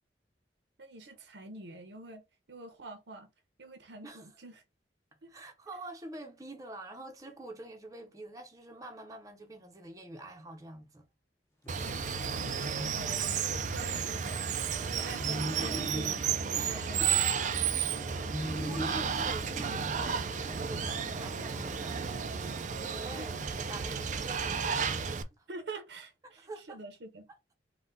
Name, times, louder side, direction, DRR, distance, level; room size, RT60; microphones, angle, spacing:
voice 1, 0.8-2.2 2.5-3.3 3.6-4.6 11.8-18.0 23.2-23.3 25.5-27.3, right 2 dB, 80° right, 0.8 m, -46 dB
voice 2, 5.3-11.1 16.5-17.1 18.3-22.1 22.4-23.4 23.7-25.5 26.2-26.8, right 2 dB, 20° right, 0.8 m, -46 dB
sound 1, 11.6-13.7 14.9-17.6 18.1-20.4, equal, 15° left, 1.0 m, -41 dB
Water, 11.7-25.2, right 6 dB, 45° right, 0.4 m, -33 dB
sound 2, 14.4-23.0, left 1 dB, 55° left, 0.8 m, -54 dB
4.2 x 2.3 x 3.9 m
head